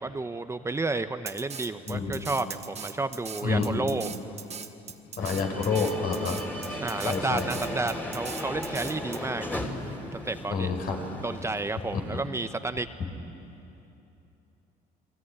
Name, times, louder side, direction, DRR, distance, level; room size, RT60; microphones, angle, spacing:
voice 1, 0.0-4.1 6.8-9.6 10.1-10.7 11.2-12.9, right 3 dB, 15° right, 9 dB, 0.8 m, -31 dB
Drum kit, 1.3-9.2, right 7 dB, 40° right, 1.6 m, -40 dB
voice 2, 1.9-2.2 3.4-3.9 5.2-6.4 6.7-6.8 7.0-7.5 10.5-11.0 11.9-12.2, left 4 dB, 65° left, 3 dB, 4.8 m, -28 dB
sound 1, 5.2-12.3, left 1 dB, 10° left, 3.2 m, -37 dB
29.0 x 20.0 x 9.9 m, 3.0 s
cardioid pair, 110°, 17 cm